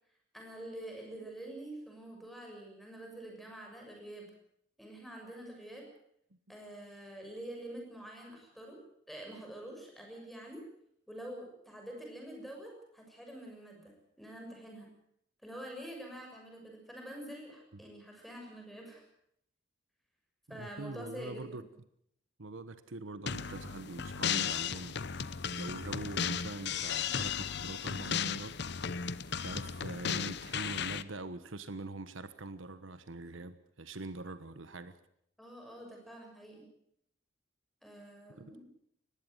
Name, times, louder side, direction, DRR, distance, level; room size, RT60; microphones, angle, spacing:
voice 1, 0.3-4.3 4.8-5.9 6.5-8.8 9.1-10.6 11.1-14.9 15.4-19.0 20.5-21.6 35.4-36.6 37.8-38.7, right 1 dB, ahead, 1 dB, 6.6 m, -46 dB
voice 2, 20.5-21.6 22.4-25.0 25.5-28.5 29.4-35.0 38.5-38.6, right 2 dB, 80° right, 12 dB, 1.3 m, -43 dB
sound 1, 23.3-31.0, left 7 dB, 55° left, 0.8 m, -35 dB
20.5 x 15.5 x 9.4 m, 0.73 s
head